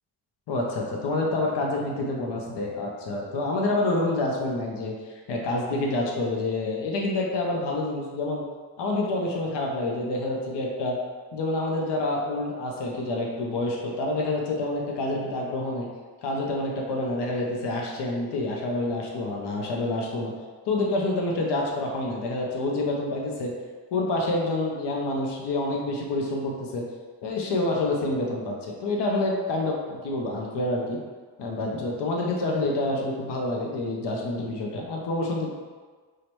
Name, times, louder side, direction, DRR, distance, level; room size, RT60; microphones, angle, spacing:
voice 1, 0.5-8.4 8.8-11.0 11.3-15.9 16.2-20.3 20.7-23.5 23.9-26.8 27.2-31.0 31.4-35.5, left 2 dB, 80° left, -1 dB, 0.8 m, -27 dB
4.7 x 2.1 x 4.5 m, 1.5 s
cardioid pair, 60°, 41 cm